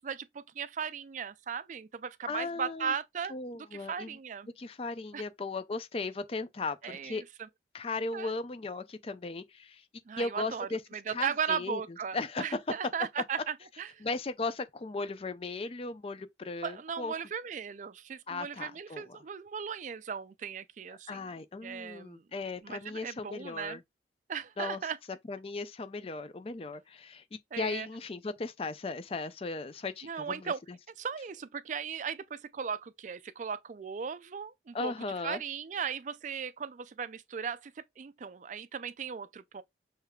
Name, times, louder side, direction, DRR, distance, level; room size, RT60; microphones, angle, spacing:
voice 1, 0.0-4.5 5.1-5.2 6.8-7.2 8.1-8.4 10.1-14.0 16.6-21.2 21.6-22.2 22.6-23.8 24.3-25.0 27.5-27.9 30.0-30.6 31.0-34.9 35.2-39.6, right 7 dB, 45° right, 0.4 m, -37 dB
voice 2, 2.3-2.9 3.3-4.2 4.6-7.2 7.7-9.8 10.2-10.8 11.1-11.8 12.1-12.6 14.0-17.1 18.3-19.2 21.1-23.8 24.6-24.8 25.3-30.8 34.7-35.4, left 3 dB, 30° left, 0.4 m, -37 dB
6.5 x 3.3 x 2.3 m
head